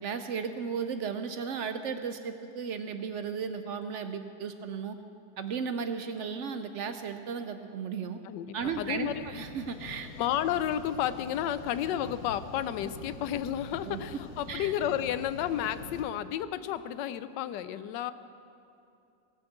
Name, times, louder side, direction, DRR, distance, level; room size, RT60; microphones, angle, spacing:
voice 1, 0.0-5.0 5.4-8.2 8.5-10.1 13.8-14.0 14.5-14.7, right 6 dB, 70° right, 9 dB, 0.7 m, -35 dB
voice 2, 8.2-9.2 10.2-18.1, left 10 dB, 85° left, 14 dB, 1.2 m, -32 dB
sound 1, 8.6-16.0, left 4 dB, 60° left, 1.4 m, -45 dB
17.5 x 7.1 x 8.0 m, 2.6 s
omnidirectional pair, 1.8 m